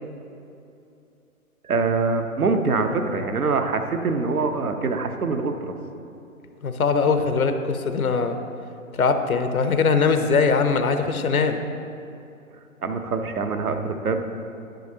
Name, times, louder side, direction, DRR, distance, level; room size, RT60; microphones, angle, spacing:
voice 1, 1.6-5.7 12.8-14.2, right 4 dB, 80° right, 6 dB, 0.9 m, -24 dB
voice 2, 6.6-8.4 9.0-11.6, left 5 dB, 75° left, 7 dB, 0.8 m, -21 dB
10.5 x 8.9 x 2.8 m, 2.7 s
figure-of-eight pair, 130°, 43 cm